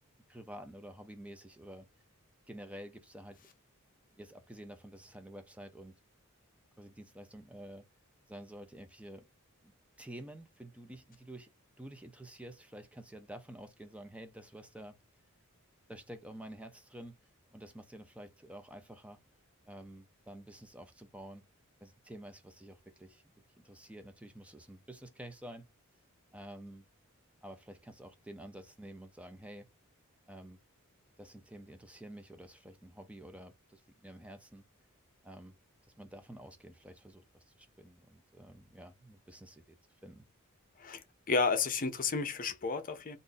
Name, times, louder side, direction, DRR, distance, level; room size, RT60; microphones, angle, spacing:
voice 1, 0.3-1.9 2.5-3.4 4.1-6.0 6.8-7.9 8.3-9.2 9.6-9.7 10.0-11.5 11.8-15.0 15.9-17.2 17.5-19.2 19.6-21.4 21.8-23.2 23.6-25.6 26.3-26.8 27.4-29.7 30.3-30.6 31.2-34.6 35.2-35.5 36.0-39.8 40.0-40.3, right 1 dB, 5° right, 0.5 m, -49 dB
voice 2, 40.8-43.2, left 4 dB, 40° left, 0.6 m, -32 dB
2.6 x 2.6 x 3.8 m
head